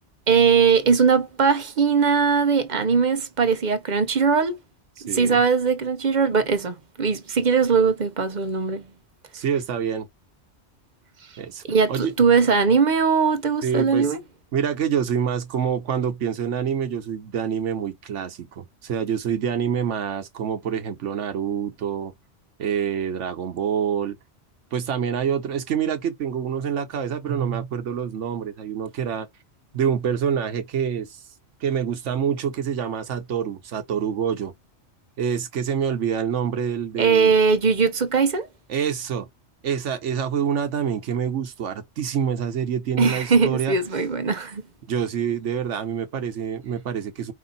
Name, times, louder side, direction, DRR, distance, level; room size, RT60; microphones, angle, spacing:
voice 1, 0.3-4.6 5.0-8.8 11.6-14.2 37.0-38.5 43.0-44.6, right 5 dB, 45° right, 0.7 m, -20 dB
voice 2, 5.1-5.4 9.3-10.1 11.4-11.6 11.9-12.1 13.6-14.1 14.5-22.1 22.6-24.2 24.7-29.3 29.7-31.2 31.6-34.5 35.2-37.3 38.7-39.3 39.6-43.7 44.9-47.3, right 8 dB, 85° right, 1.2 m, -26 dB
5.1 x 2.6 x 3.9 m
omnidirectional pair, 1.2 m